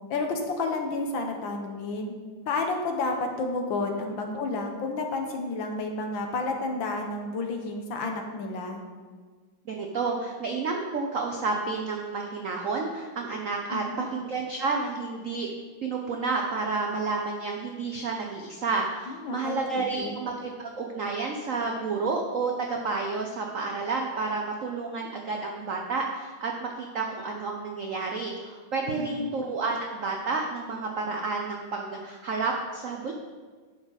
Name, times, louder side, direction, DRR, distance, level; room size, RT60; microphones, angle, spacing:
voice 1, 0.1-2.1 2.5-8.8 13.7-14.1 19.1-20.1 28.9-29.3, left 3 dB, 65° left, 3 dB, 1.7 m, -31 dB
voice 2, 9.7-13.8 14.1-15.5 15.8-33.1, right 4 dB, 70° right, 1 dB, 0.7 m, -30 dB
11.0 x 6.4 x 4.1 m, 1.5 s
omnidirectional pair, 2.4 m